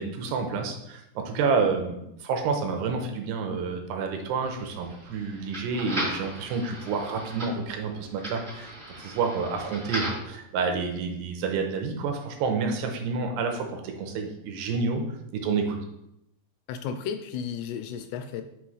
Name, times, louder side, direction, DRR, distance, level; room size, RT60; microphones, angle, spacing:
voice 1, 0.0-8.7 9.0-15.0 15.3-15.8, right 5 dB, 80° right, 4 dB, 2.7 m, -29 dB
sound 1, 4.4-10.3, right 1 dB, 20° right, 1.9 m, -37 dB
voice 2, 16.7-18.4, left 7 dB, 85° left, 8 dB, 2.6 m, -33 dB
8.3 x 5.6 x 3.1 m, 0.84 s
omnidirectional pair, 5.0 m